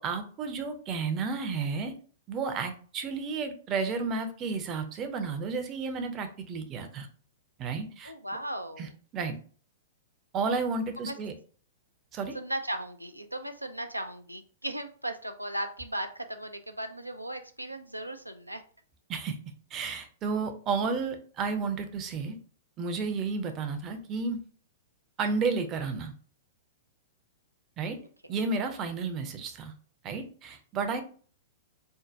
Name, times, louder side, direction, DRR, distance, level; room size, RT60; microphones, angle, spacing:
voice 1, 0.0-1.9 2.3-7.1 7.6-8.1 8.8-8.9 9.1-9.4 10.3-11.3 12.1-12.4 19.1-19.4 19.7-22.4 22.8-24.4 25.2-26.1 27.8-28.0 28.3-29.7 30.0-31.0, right 4 dB, 30° right, 7 dB, 0.5 m, -32 dB
voice 2, 8.0-8.9 11.0-11.1 12.3-18.6, right 1 dB, 90° right, 7 dB, 0.3 m, -36 dB
4.4 x 2.1 x 2.6 m, 0.43 s
figure-of-eight pair, 105°, 0 cm